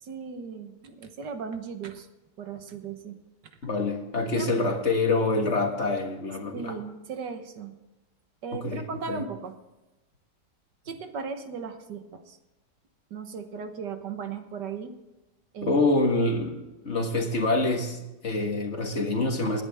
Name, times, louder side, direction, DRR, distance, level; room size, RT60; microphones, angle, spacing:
voice 1, 0.0-2.1 2.4-3.2 4.3-4.5 6.5-7.7 8.4-9.5 10.8-12.4 13.1-14.9 15.5-15.8, right 6 dB, 75° right, 7 dB, 1.8 m, -37 dB
voice 2, 3.6-6.8 8.5-9.2 15.6-19.6, left 2 dB, 45° left, 3 dB, 1.8 m, -26 dB
19.5 x 10.0 x 3.5 m, 1.0 s
omnidirectional pair, 1.8 m